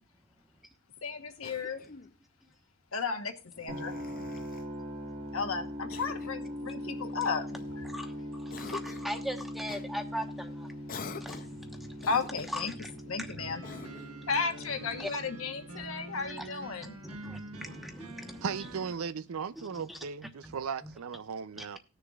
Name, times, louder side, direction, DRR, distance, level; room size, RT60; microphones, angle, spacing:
voice 1, 1.0-1.8 2.9-3.9 5.3-7.8 12.1-12.7 13.1-13.6 14.3-16.9, left 5 dB, 65° left, 1.2 m, -34 dB
Cough, 1.4-2.2 3.5-4.7 5.9-6.4 7.2-8.0 8.5-9.1 9.7-9.9 10.9-11.6 12.0-12.8 13.6-14.2, left 5 dB, 40° left, 0.6 m, -46 dB
sound 1, 3.7-19.6, equal, 30° right, 1.4 m, -42 dB
voice 2, 7.8-12.1 12.5-13.0 13.3-13.9 15.0-15.1 15.7-15.9 16.3-16.5 17.0-18.5 19.7-20.0 20.4-20.9 21.6-21.7, equal, ahead, 1.1 m, -41 dB
sound 2, 13.4-18.9, right 2 dB, 90° right, 1.2 m, -46 dB
voice 3, 18.4-21.8, right 6 dB, 75° right, 0.5 m, -37 dB
19.5 x 6.6 x 2.4 m
head